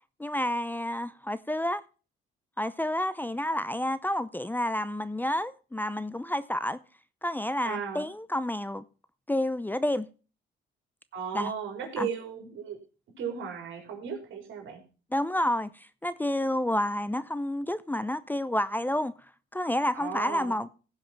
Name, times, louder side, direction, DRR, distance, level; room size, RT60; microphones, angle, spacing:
voice 1, 0.2-1.8 2.6-6.8 7.2-8.8 9.3-10.1 11.3-11.5 12.0-12.1 15.1-19.1 19.5-20.7, left 1 dB, 10° left, 0.6 m, -29 dB
voice 2, 7.6-8.1 11.1-12.8 13.2-14.8 19.9-20.6, right 7 dB, 75° right, 4.2 m, -36 dB
16.0 x 5.7 x 5.9 m
cardioid pair, 90°, 20 cm